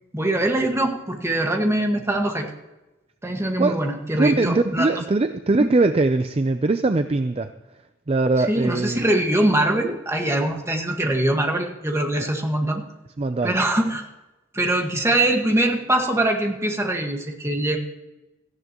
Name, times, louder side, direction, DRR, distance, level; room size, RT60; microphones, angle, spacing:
voice 1, 0.1-2.5 3.2-4.9 5.6-5.7 8.5-12.8 13.4-14.0 14.5-17.8, right 1 dB, 15° right, 2 dB, 1.7 m, -22 dB
voice 2, 4.1-7.5 8.1-9.0 12.2-12.3 13.2-13.5, right 3 dB, 30° right, 9 dB, 0.5 m, -21 dB
17.5 x 14.5 x 3.0 m, 1.0 s
head